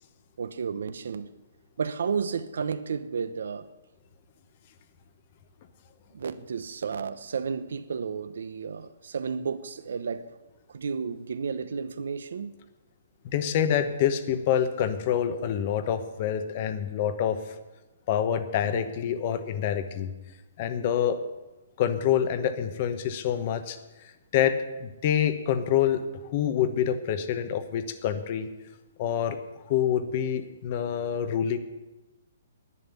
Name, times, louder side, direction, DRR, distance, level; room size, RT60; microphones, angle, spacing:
voice 1, 0.4-1.3 1.8-3.7 6.1-10.3 10.7-12.5 18.6-18.9, right 6 dB, 75° right, 0.9 m, -32 dB
voice 2, 13.2-17.4 18.1-20.1 20.6-21.2 21.8-23.8 24.3-26.0 26.3-28.5 29.0-29.4 29.7-31.6, left 9 dB, 35° left, 1.0 m, -26 dB
11.0 x 9.9 x 8.4 m
hypercardioid pair, 170°, 0 cm